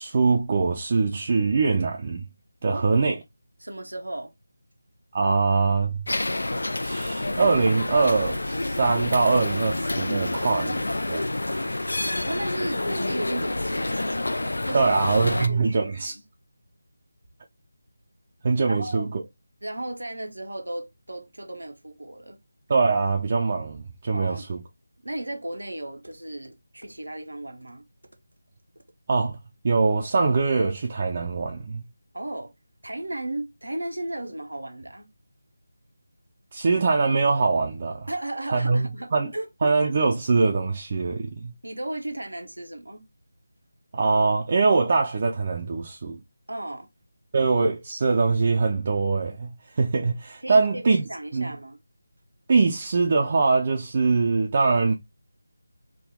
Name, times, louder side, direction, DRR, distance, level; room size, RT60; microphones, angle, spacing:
voice 1, 0.0-2.2 2.6-3.2 5.1-6.0 6.8-10.8 11.1-11.2 11.5-11.6 14.7-16.1 18.4-19.1 22.7-24.6 29.1-29.4 29.6-31.8 36.5-38.1 38.5-39.3 39.6-41.5 43.9-46.2 47.3-51.0 51.3-51.5 52.5-54.9, right 4 dB, 35° right, 0.5 m, -23 dB
voice 2, 3.6-4.3 12.2-15.0 15.3-16.1 18.7-19.1 19.6-22.4 24.1-24.5 25.0-27.8 32.1-32.5 32.8-35.1 38.1-39.8 41.6-43.1 46.5-46.9 50.4-51.8, right 1 dB, 85° right, 0.8 m, -35 dB
sound 1, 6.1-15.5, left 2 dB, 70° left, 0.4 m, -28 dB
3.7 x 2.2 x 3.6 m
figure-of-eight pair, 160°, 0 cm